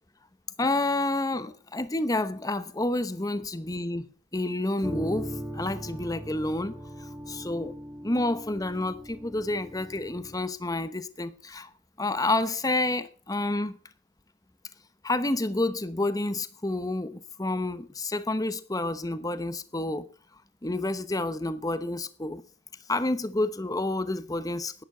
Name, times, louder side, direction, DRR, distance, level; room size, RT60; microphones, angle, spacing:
voice 1, 0.6-4.1 4.3-6.8 7.3-7.8 8.0-11.7 12.0-13.8 15.0-20.1 20.6-22.4 22.9-24.8, left 2 dB, 15° left, 0.9 m, -29 dB
sound 1, 4.8-10.4, equal, 5° right, 1.8 m, -39 dB
11.5 x 11.0 x 5.6 m
head